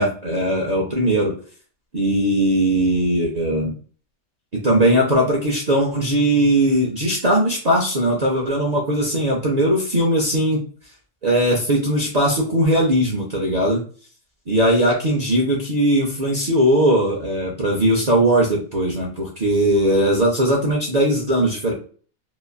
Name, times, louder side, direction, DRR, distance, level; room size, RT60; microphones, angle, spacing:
voice 1, 0.0-1.3 1.9-3.7 4.6-10.6 11.2-13.8 14.5-21.7, right 1 dB, 70° right, -2 dB, 0.3 m, -19 dB
2.9 x 2.5 x 2.3 m, 0.42 s
omnidirectional pair, 1.5 m